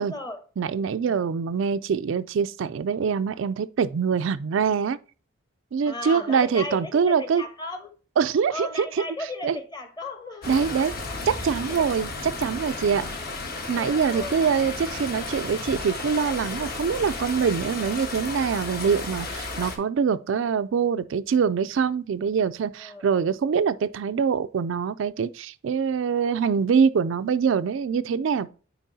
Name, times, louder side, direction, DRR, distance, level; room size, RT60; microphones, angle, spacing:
voice 1, 0.0-0.4 1.0-1.3 5.8-7.9 8.5-10.9 11.6-11.9 13.7-14.7 22.8-23.3, left 2 dB, 20° left, 1.1 m, -36 dB
voice 2, 0.6-5.0 5.7-7.4 8.2-9.0 9.4-9.6 10.5-10.9 11.3-13.0 13.7-28.5, right 6 dB, 65° right, 0.3 m, -24 dB
sound 1, 10.4-19.8, left 3 dB, 45° left, 1.3 m, -33 dB
9.0 x 4.6 x 2.7 m
head